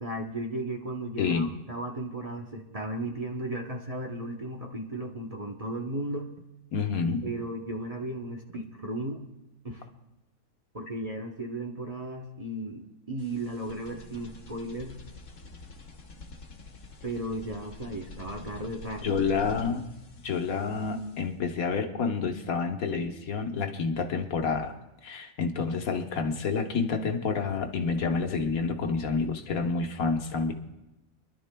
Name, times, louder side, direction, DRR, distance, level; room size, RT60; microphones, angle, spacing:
voice 1, 0.0-6.3 7.2-9.2 9.6-9.9 10.7-15.0 17.0-19.2, right 1 dB, 30° right, 1 dB, 0.8 m, -35 dB
voice 2, 1.2-1.5 6.7-7.3 19.0-19.8 20.2-24.8 25.0-30.5, left 5 dB, 85° left, 5 dB, 1.5 m, -28 dB
sound 1, 13.2-21.4, left 3 dB, 65° left, 1.5 m, -47 dB
27.5 x 11.5 x 2.2 m, 0.97 s
omnidirectional pair, 1.5 m